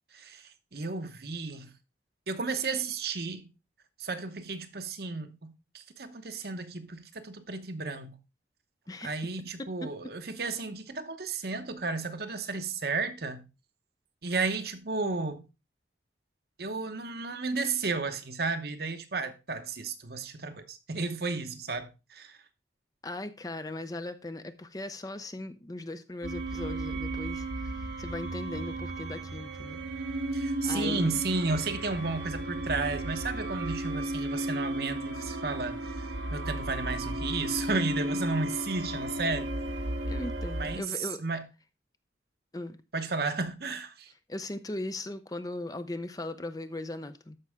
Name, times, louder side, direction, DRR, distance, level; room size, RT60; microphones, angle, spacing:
voice 1, 0.2-1.7 2.3-3.5 4.0-8.2 9.0-13.4 14.2-15.4 16.6-22.4 30.3-39.5 40.6-41.5 42.9-44.1, right 3 dB, 55° right, 1.0 m, -33 dB
voice 2, 8.9-9.9 23.0-29.8 30.6-31.2 40.0-41.2 42.5-42.8 44.3-47.4, left 2 dB, 20° left, 0.6 m, -38 dB
sound 1, 26.2-40.8, right 1 dB, 75° right, 1.3 m, -34 dB
13.0 x 5.5 x 3.6 m
head